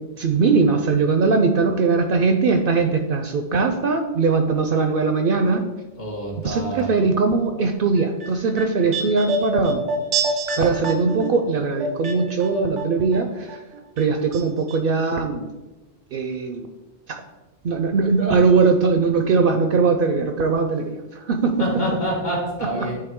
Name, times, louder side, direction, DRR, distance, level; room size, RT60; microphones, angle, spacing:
voice 1, 0.2-5.6 6.4-9.8 10.3-13.6 14.0-15.5 16.1-16.7 17.1-17.2 17.6-21.7 22.8-22.9, right 4 dB, 60° right, 5 dB, 0.7 m, -20 dB
voice 2, 6.0-6.9 21.6-23.0, equal, 55° left, -1 dB, 2.0 m, -27 dB
sound 1, 8.0-13.2 13.5-14.4 14.7-14.8, right 2 dB, 85° right, 1.2 m, -27 dB
8.6 x 3.7 x 3.6 m, 1.1 s
omnidirectional pair, 1.2 m